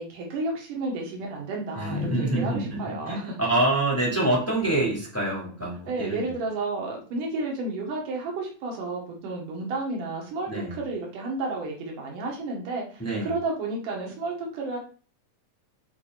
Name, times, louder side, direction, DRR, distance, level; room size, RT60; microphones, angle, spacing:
voice 1, 0.0-3.4 5.3-5.6 5.9-14.8, right 3 dB, 90° right, 0 dB, 3.4 m, -32 dB
voice 2, 1.8-2.8 3.1-6.3 10.5-10.7 13.0-13.4, right 1 dB, 5° left, -5 dB, 3.1 m, -26 dB
8.7 x 4.6 x 4.1 m, 0.41 s
omnidirectional pair, 3.6 m